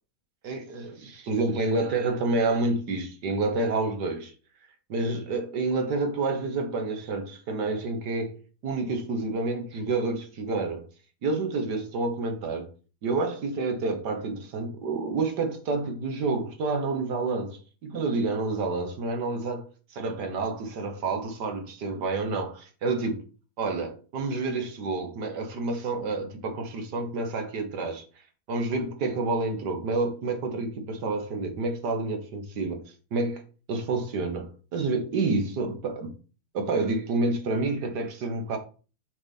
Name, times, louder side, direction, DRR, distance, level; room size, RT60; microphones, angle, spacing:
voice 1, 0.4-4.3 4.9-10.8 11.2-12.7 13.0-19.7 19.9-23.2 23.6-28.0 28.5-32.8 33.1-33.4 33.7-36.1 36.5-38.6, right 3 dB, 70° right, 1.8 m, -29 dB
7.1 x 5.0 x 4.1 m
omnidirectional pair, 1.9 m